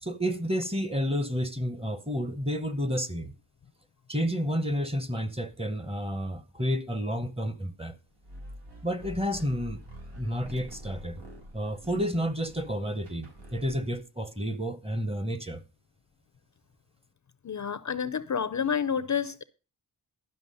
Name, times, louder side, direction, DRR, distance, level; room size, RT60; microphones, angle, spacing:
voice 1, 0.0-3.3 4.1-8.0 8.8-9.8 10.1-11.2 11.5-15.6, equal, 15° right, 0.9 m, -30 dB
sound 1, 8.2-14.0, equal, 90° right, 4.6 m, -46 dB
voice 2, 17.4-19.4, left 7 dB, 45° left, 0.5 m, -29 dB
11.5 x 5.9 x 5.4 m
wide cardioid pair, 130°, 42 cm